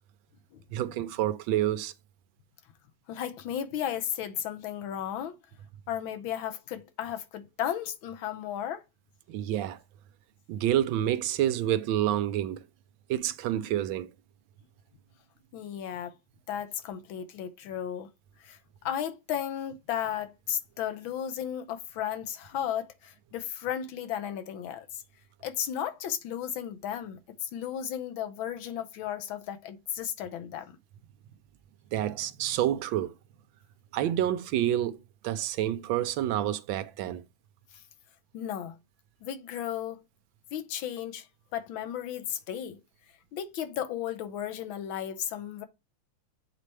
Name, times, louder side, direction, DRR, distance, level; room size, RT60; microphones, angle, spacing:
voice 1, 0.7-1.9 9.3-9.8 10.5-12.6 13.1-14.1 31.9-33.1 33.9-37.2, right 12 dB, 80° right, 1.3 m, -28 dB
voice 2, 3.1-5.4 5.9-8.8 15.5-16.2 16.5-18.1 18.4-18.6 18.8-25.0 25.4-30.8 37.7-37.8 38.3-38.8 39.2-40.0 40.5-41.3 41.5-42.8 43.3-45.6, left 10 dB, 80° left, 1.5 m, -34 dB
8.3 x 4.2 x 3.3 m
omnidirectional pair, 2.2 m